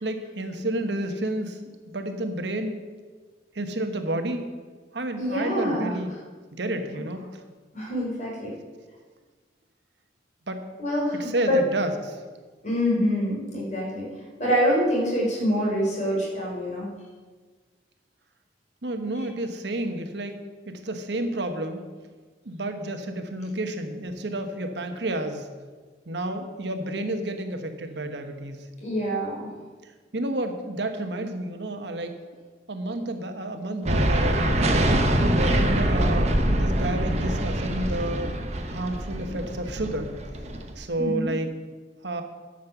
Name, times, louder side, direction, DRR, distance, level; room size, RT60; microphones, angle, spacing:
voice 1, 0.0-1.6 1.9-2.8 3.5-4.5 4.9-6.1 6.6-7.4 10.5-10.6 11.2-12.2 18.8-20.4 20.7-21.8 22.4-25.5 26.1-28.7 29.8-32.1 32.7-34.9 35.3-38.3 38.7-40.1 40.8-41.5 42.0-42.2, right 1 dB, 70° right, 7 dB, 1.1 m, -30 dB
voice 2, 5.2-5.9 7.7-8.5 10.8-11.6 12.6-14.0 14.4-16.9 19.2-19.3 28.8-29.5 41.0-41.3, equal, 40° left, -4 dB, 4.1 m, -25 dB
sound 1, 33.9-40.8, right 1 dB, 35° right, 1.0 m, -24 dB
11.0 x 6.5 x 6.9 m, 1.4 s
head